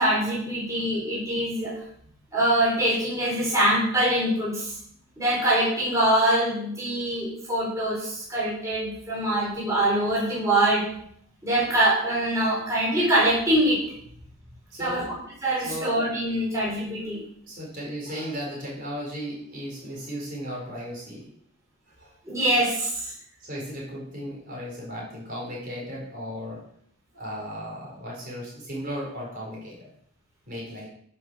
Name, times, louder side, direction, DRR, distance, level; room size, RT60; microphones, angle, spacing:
voice 1, 0.0-1.8 2.3-4.7 5.2-10.9 11.4-13.8 14.8-15.1 15.4-17.2 22.3-23.1, right 1 dB, 15° right, -7 dB, 4.2 m, -24 dB
voice 2, 14.7-15.1 15.6-16.1 16.3-16.6 17.4-21.3 21.9-22.2 23.4-26.6 27.1-29.9 30.4-30.9, equal, 40° right, -4 dB, 4.8 m, -36 dB
10.5 x 6.2 x 6.3 m, 0.66 s
head